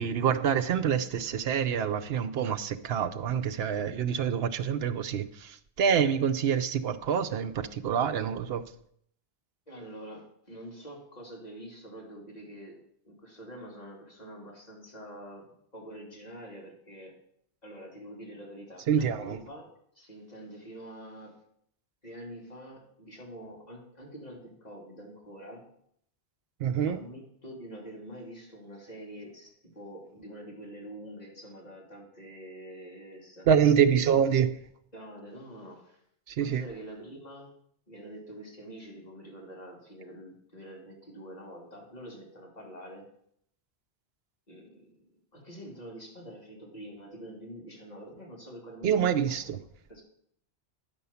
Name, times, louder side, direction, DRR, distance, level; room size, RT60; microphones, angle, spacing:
voice 1, 0.0-8.6 18.9-19.4 26.6-27.0 33.5-34.5 36.4-36.6 48.8-49.6, right 8 dB, 70° right, 0.9 m, -26 dB
voice 2, 9.7-12.8 13.0-15.5 15.7-17.1 17.6-21.3 22.0-25.6 26.9-33.5 33.8-34.2 34.9-36.0 36.4-37.5 37.9-43.0 44.5-45.0 45.3-49.5 49.9-50.0, right 1 dB, 40° left, 3.1 m, -46 dB
10.0 x 5.4 x 7.0 m
omnidirectional pair, 1.1 m